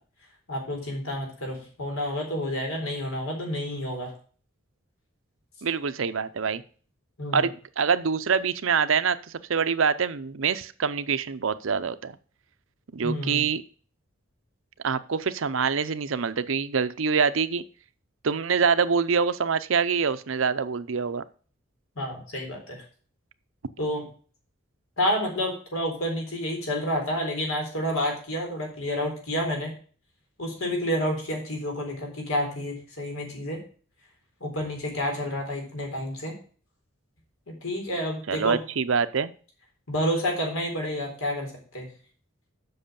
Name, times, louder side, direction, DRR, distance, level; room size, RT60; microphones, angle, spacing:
voice 1, 0.5-4.1 7.2-7.5 13.0-13.4 22.0-22.8 23.8-24.0 25.0-29.7 30.4-33.6 34.4-36.3 37.5-38.6 39.9-41.9, equal, 85° left, 1 dB, 4.0 m, -29 dB
voice 2, 5.6-6.6 7.3-9.2 9.5-12.2 12.9-13.6 14.8-17.6 18.2-21.2 38.3-39.3, right 6 dB, 75° right, 14 dB, 0.6 m, -25 dB
7.8 x 6.1 x 6.9 m, 0.42 s
head